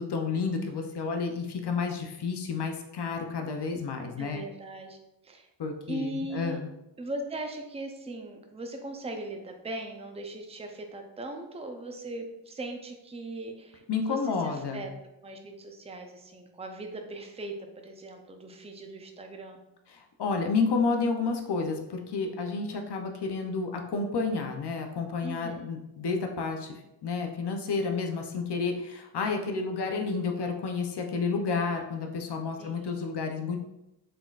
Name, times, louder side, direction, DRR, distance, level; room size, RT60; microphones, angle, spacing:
voice 1, 0.0-4.4 5.6-6.7 13.9-14.8 19.9-26.7 27.0-33.6, left 4 dB, 70° left, 3 dB, 0.6 m, -30 dB
voice 2, 4.2-5.0 5.2-5.5 5.9-6.6 7.0-14.9 15.2-19.6 25.2-25.7 32.6-33.1, right 2 dB, 15° right, 4 dB, 0.5 m, -39 dB
3.9 x 3.8 x 2.4 m, 0.88 s
wide cardioid pair, 75°, 42 cm